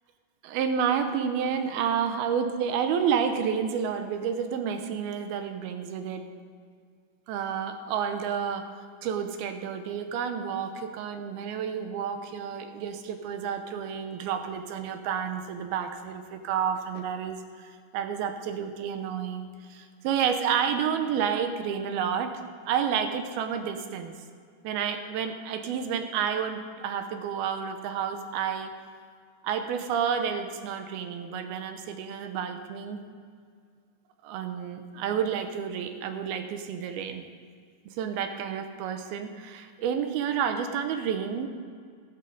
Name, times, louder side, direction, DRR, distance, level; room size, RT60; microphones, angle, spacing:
voice 1, 0.4-6.3 7.3-8.7 9.0-17.4 17.9-22.3 22.7-24.1 24.6-28.7 29.4-33.0 34.2-37.2 37.9-41.5, right 7 dB, 80° right, 7 dB, 2.5 m, -30 dB
14.5 x 13.5 x 3.9 m, 2.1 s
omnidirectional pair, 4.7 m